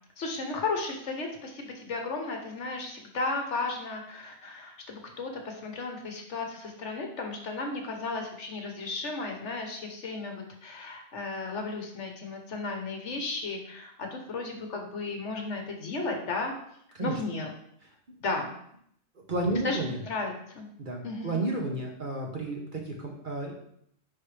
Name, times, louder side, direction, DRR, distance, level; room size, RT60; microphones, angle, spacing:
voice 1, 0.2-16.5 17.0-17.5 18.2-18.5 19.6-20.7 21.0-21.5, left 3 dB, 60° left, 3 dB, 1.3 m, -34 dB
voice 2, 19.3-20.0 20.8-23.5, right 2 dB, 40° right, 0 dB, 1.2 m, -31 dB
10.0 x 3.9 x 3.3 m, 0.70 s
omnidirectional pair, 1.4 m